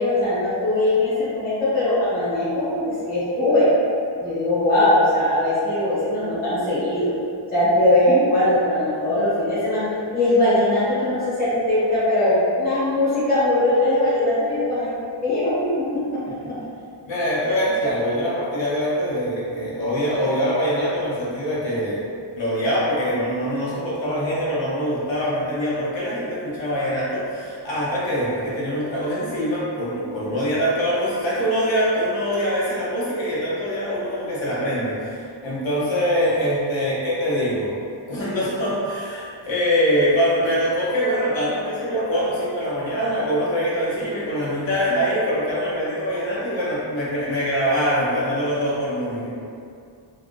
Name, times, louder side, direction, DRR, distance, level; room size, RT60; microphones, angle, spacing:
voice 1, 0.0-3.7 3.9-7.1 7.5-9.9 10.1-15.5, left 1 dB, 20° left, -12 dB, 1.1 m, -20 dB
voice 2, 17.1-22.0 22.4-37.7 38.1-49.3, equal, 75° left, -7 dB, 0.8 m, -23 dB
3.3 x 2.4 x 2.5 m, 2.4 s
wide cardioid pair, 150°, 46 cm